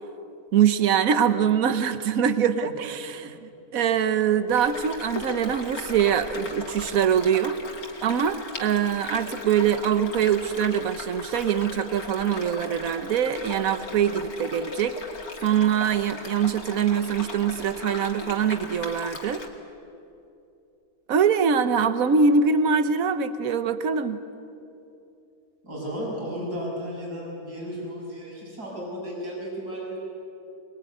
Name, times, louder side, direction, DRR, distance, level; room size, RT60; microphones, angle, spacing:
voice 1, 0.5-7.6 8.0-15.0 15.4-19.4 21.1-24.2, right 7 dB, 65° right, 11 dB, 1.5 m, -23 dB
sound 1, 4.5-19.5, left 3 dB, 70° left, 2.8 m, -38 dB
voice 2, 25.6-30.0, equal, 90° right, -3 dB, 7.1 m, -34 dB
23.5 x 21.5 x 9.4 m, 2.7 s
omnidirectional pair, 1.6 m